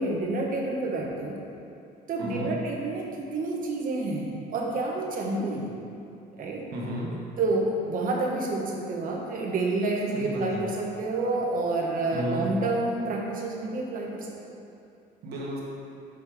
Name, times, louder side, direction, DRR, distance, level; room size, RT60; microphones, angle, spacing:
voice 1, 0.0-1.4 2.1-5.7 6.4-6.7 7.4-14.3, right 2 dB, 55° right, -2 dB, 1.1 m, -29 dB
voice 2, 2.2-2.5 6.7-7.1 10.1-10.6 12.1-12.5 15.2-15.6, right 1 dB, 75° right, -4 dB, 1.4 m, -33 dB
6.4 x 5.3 x 3.5 m, 2.6 s
cardioid pair, 110°, 17 cm